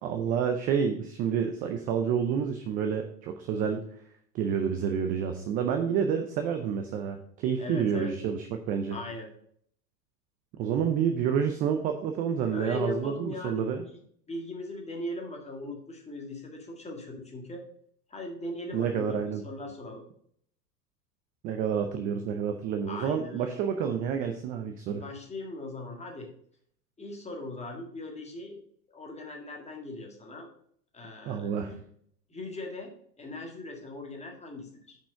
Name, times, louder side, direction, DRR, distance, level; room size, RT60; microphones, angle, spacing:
voice 1, 0.0-3.9 4.3-9.0 10.6-13.8 18.7-19.4 21.4-25.0 31.3-31.7, right 7 dB, 20° right, 6 dB, 0.3 m, -29 dB
voice 2, 7.6-8.1 8.9-9.3 12.5-14.0 14.3-17.7 18.1-20.0 22.9-23.5 24.9-26.3 27.0-28.6 28.9-30.5 30.9-31.8 32.3-35.0, left 2 dB, 15° left, 1 dB, 1.8 m, -39 dB
5.4 x 5.2 x 6.3 m, 0.64 s
hypercardioid pair, 100°, 49 cm